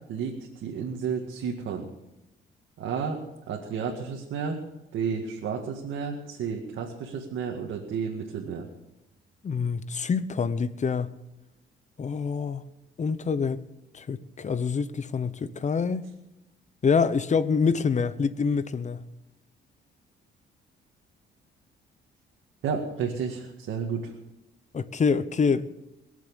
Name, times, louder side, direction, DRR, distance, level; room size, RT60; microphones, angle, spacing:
voice 1, 0.1-1.9 2.8-3.2 3.5-4.6 4.9-8.7 22.6-24.1, right 6 dB, 75° right, 2.0 m, -31 dB
voice 2, 9.4-11.1 12.0-12.6 13.0-13.7 13.9-16.0 16.8-19.0 24.7-25.7, left 5 dB, 35° left, 0.9 m, -26 dB
22.0 x 7.5 x 7.1 m
cardioid pair, 90°, 20 cm